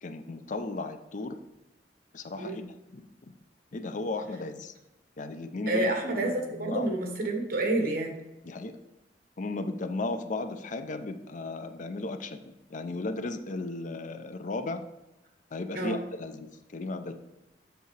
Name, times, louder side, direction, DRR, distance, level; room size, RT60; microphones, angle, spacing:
voice 1, 0.0-1.4 2.1-2.6 2.9-3.0 3.7-4.7 5.2-6.9 8.4-8.7 9.4-14.8 15.5-17.1, left 2 dB, 45° left, 9 dB, 0.5 m, -35 dB
voice 2, 5.7-8.2 15.7-16.0, right 2 dB, 55° right, 3 dB, 1.4 m, -29 dB
8.0 x 6.5 x 3.2 m, 0.98 s
head